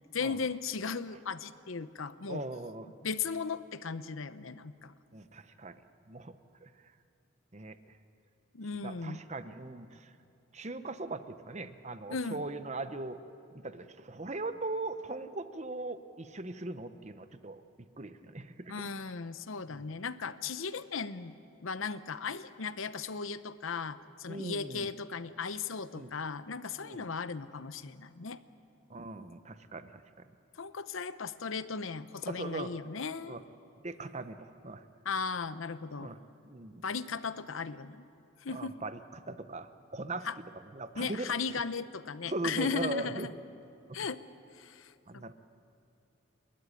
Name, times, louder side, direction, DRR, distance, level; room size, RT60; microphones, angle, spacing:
voice 1, 0.1-2.4 3.0-4.9 8.5-9.2 12.1-12.5 18.7-28.4 30.5-33.4 35.0-36.1 36.8-38.1 38.4-38.8 40.2-40.4 41.0-43.3 43.9-44.2 44.5-45.3, left 5 dB, 75° left, 13 dB, 0.8 m, -37 dB
voice 2, 2.3-2.9 5.1-5.8 6.1-6.7 7.5-8.0 8.8-10.1 10.5-13.2 13.5-17.6 18.0-18.9 19.7-19.9 24.3-24.9 25.9-26.1 26.8-27.1 28.9-30.3 32.3-32.7 33.3-33.4 33.8-34.8 36.0-36.8 38.5-40.3 40.7-41.3 42.3-43.3 43.9-44.0 45.1-45.3, right 2 dB, 35° right, 10 dB, 0.9 m, -40 dB
29.5 x 13.0 x 9.8 m, 2.8 s
head